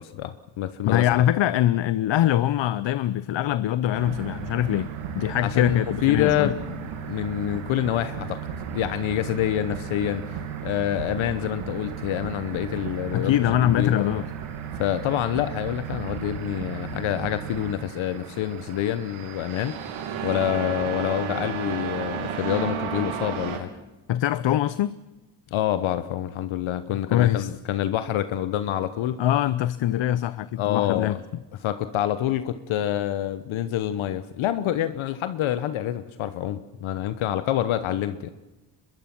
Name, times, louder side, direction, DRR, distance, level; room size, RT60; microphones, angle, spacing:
voice 1, 0.0-1.1 5.4-8.4 8.7-13.9 14.8-19.8 20.2-23.7 25.5-29.2 30.6-31.1 31.6-38.3, left 12 dB, 85° left, 1.1 m, -27 dB
voice 2, 0.8-4.9 5.1-6.5 13.1-14.3 24.1-25.0 27.1-27.5 29.2-31.2, left 12 dB, 70° left, 0.8 m, -23 dB
sound 1, 3.9-23.6, right 7 dB, 90° right, 2.7 m, -34 dB
24.0 x 21.5 x 6.1 m
supercardioid pair, 60°, 47 cm